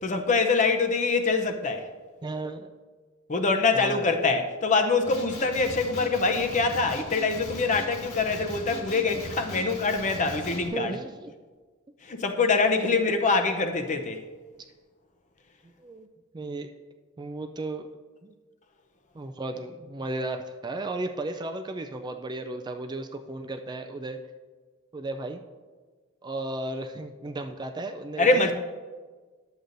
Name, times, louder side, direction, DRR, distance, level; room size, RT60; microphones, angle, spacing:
voice 1, 0.0-1.9 3.3-10.9 12.0-14.2 28.2-28.5, left 4 dB, 35° left, 0.6 m, -24 dB
voice 2, 2.2-2.7 3.7-4.3 10.6-11.3 15.8-16.1 16.3-16.7 17.2-17.9 18.2-18.3 19.1-24.2 24.9-25.4 26.2-28.5, right 2 dB, 20° right, 0.3 m, -34 dB
Male speech man speaking, 5.0-10.7, left 1 dB, 70° left, 1.8 m, -39 dB
11.5 x 8.0 x 2.6 m
head